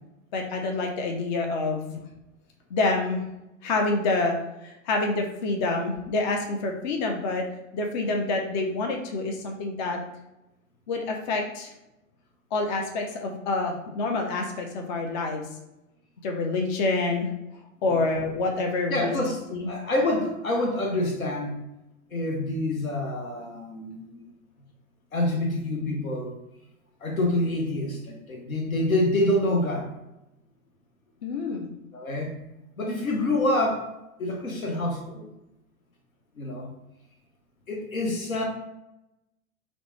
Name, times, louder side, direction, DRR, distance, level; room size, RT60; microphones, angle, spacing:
voice 1, 0.3-2.0 2.7-3.2 3.6-4.4 4.6-7.5 7.7-10.0 10.9-11.7 12.5-15.4 16.2-17.3 17.8-19.1 19.5-19.7 31.2-31.7, left 3 dB, 35° left, 2 dB, 0.4 m, -27 dB
voice 2, 18.9-19.4 19.7-21.6 22.1-24.3 25.1-26.4 27.0-29.9 31.9-32.3 32.8-33.8 34.2-35.3 36.4-36.7 37.7-38.4, left 1 dB, 80° left, 2 dB, 0.7 m, -27 dB
2.9 x 2.0 x 3.0 m, 0.91 s
figure-of-eight pair, 95°, 41 cm